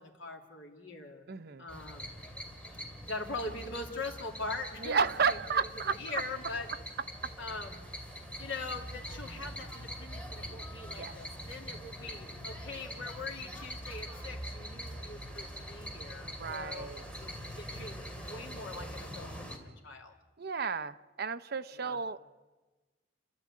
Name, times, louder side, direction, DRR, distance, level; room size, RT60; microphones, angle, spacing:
voice 1, 0.0-1.3 1.6-2.2 3.0-6.7 7.4-7.8 8.4-16.9 17.2-19.5 19.8-20.1 21.7-22.0, left 3 dB, 80° left, 2 dB, 2.7 m, -42 dB
voice 2, 1.3-1.7 4.8-6.2 11.0-11.1 16.3-17.0 20.4-22.2, right 5 dB, 55° right, 13 dB, 0.7 m, -32 dB
sound 1, 1.7-19.6, equal, 5° left, 2.6 m, -43 dB
30.0 x 12.0 x 8.5 m, 1.2 s
head